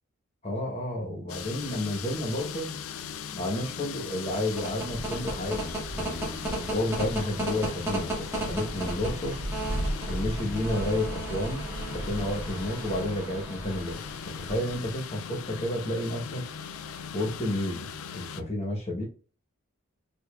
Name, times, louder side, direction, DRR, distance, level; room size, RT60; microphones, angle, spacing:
voice 1, 0.4-2.7 3.3-9.4 10.0-16.5 17.1-19.0, left 1 dB, 30° left, 0.9 m, -31 dB
sound 1, 1.3-18.4, left 7 dB, 70° left, 0.3 m, -39 dB
sound 2, 4.2-15.0, right 1 dB, 10° right, 1.0 m, -34 dB
4.9 x 2.4 x 2.3 m
head